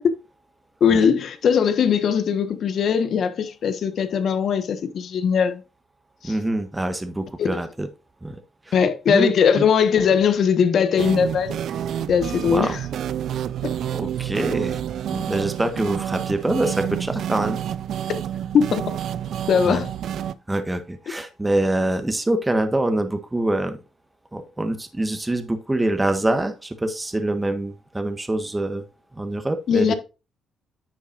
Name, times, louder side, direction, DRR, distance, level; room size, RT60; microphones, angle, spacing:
voice 1, 0.8-5.6 6.2-6.3 7.4-7.5 8.7-11.6 12.1-12.8 18.5-18.8 19.5-19.9 29.7-29.9, left 7 dB, 60° left, 1.3 m, -20 dB
voice 2, 6.2-7.9 8.2-8.4 8.7-8.8 9.1-9.6 12.5-12.8 13.9-14.8 15.1-17.6 19.6-19.8 20.5-23.8 24.3-28.8 29.1-29.9, right 1 dB, 15° right, 1.4 m, -25 dB
sound 1, 11.0-20.3, right 10 dB, 70° right, 0.6 m, -29 dB
9.8 x 6.9 x 2.6 m
cardioid pair, 90°, 0 cm